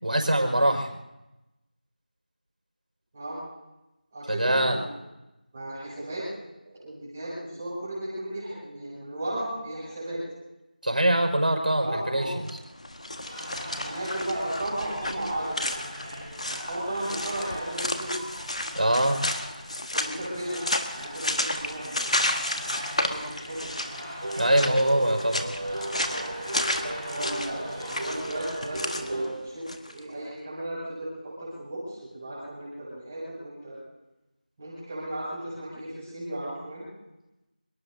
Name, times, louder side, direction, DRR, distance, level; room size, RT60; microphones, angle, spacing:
voice 1, 0.0-0.9 4.3-4.8 10.8-12.5 18.7-19.2 24.4-25.4, right 1 dB, 65° right, 2 dB, 5.4 m, -23 dB
voice 2, 4.1-4.9 5.5-6.4 6.6-10.2 11.8-12.3 13.8-15.7 16.5-18.1 19.9-20.6 20.9-22.1 23.0-24.0 27.0-33.8 34.6-36.8, right 1 dB, 10° right, -9 dB, 6.5 m, -35 dB
sound 1, 12.4-30.0, left 1 dB, 45° left, 1.5 m, -32 dB
sound 2, 13.2-29.2, equal, 10° left, 5.7 m, -41 dB
sound 3, 24.2-29.4, right 1 dB, 40° right, 5.6 m, -35 dB
28.0 x 19.0 x 2.7 m, 0.96 s
figure-of-eight pair, 175°, 5 cm